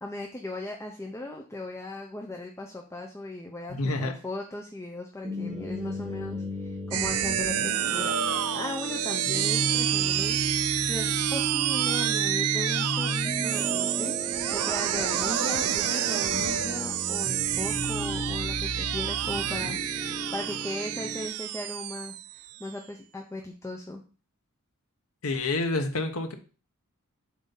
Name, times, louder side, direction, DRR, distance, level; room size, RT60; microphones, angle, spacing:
voice 1, 0.0-10.4 10.8-14.2 14.5-19.8 20.3-24.0, left 1 dB, 10° left, 1 dB, 0.6 m, -37 dB
voice 2, 3.7-4.2 19.2-19.8 25.2-26.3, left 2 dB, 70° left, 7 dB, 1.0 m, -29 dB
sound 1, 5.2-21.3, equal, 25° right, 1.4 m, -34 dB
sound 2, 6.9-22.7, right 13 dB, 85° right, 0.4 m, -29 dB
7.3 x 2.8 x 5.5 m, 0.36 s
head